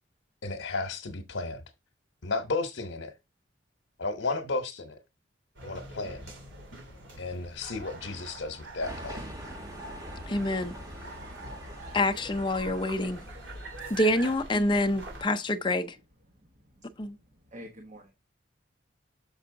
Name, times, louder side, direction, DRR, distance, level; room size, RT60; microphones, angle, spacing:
voice 1, 0.4-1.6 2.2-3.1 4.0-5.0 5.6-6.2 7.2-9.2, left 3 dB, 75° left, 1.0 m, -33 dB
sound 1, 5.5-15.2, right 2 dB, 75° right, 3.0 m, -44 dB
sound 2, 8.8-13.7, equal, 20° right, 1.3 m, -44 dB
voice 2, 10.3-10.8 11.9-13.2 13.9-16.0 17.0-17.2, left 1 dB, 25° left, 0.6 m, -27 dB
voice 3, 17.5-18.1, equal, 40° right, 1.2 m, -49 dB
6.9 x 5.6 x 3.7 m
head